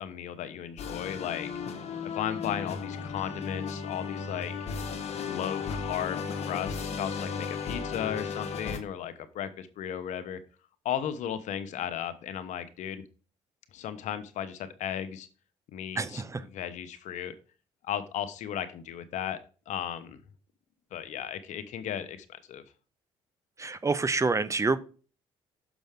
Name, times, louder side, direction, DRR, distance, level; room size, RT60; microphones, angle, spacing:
voice 1, 0.0-1.5 2.0-4.5 5.2-10.4 10.8-13.0 13.7-15.3 15.7-16.2 16.5-17.3 17.8-19.4 19.7-20.2 20.9-22.6, left 9 dB, 70° left, 12 dB, 0.9 m, -35 dB
sound 1, 0.8-8.8, left 5 dB, 55° left, 1.3 m, -35 dB
voice 2, 16.0-16.4 23.6-24.8, right 3 dB, 25° right, 15 dB, 0.7 m, -27 dB
6.5 x 6.0 x 3.6 m, 0.36 s
supercardioid pair, 70°, 13 cm